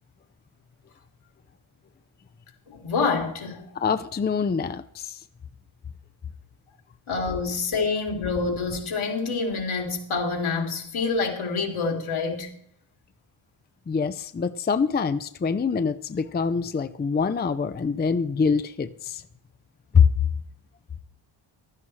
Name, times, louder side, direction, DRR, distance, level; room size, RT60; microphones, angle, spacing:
voice 1, 2.7-3.7 7.1-12.6, left 4 dB, 75° left, 2.7 m, -27 dB
voice 2, 3.8-5.2 13.9-19.2 19.9-20.1, left 6 dB, 20° left, 0.5 m, -24 dB
15.5 x 12.5 x 3.2 m
wide cardioid pair, 130°, 49 cm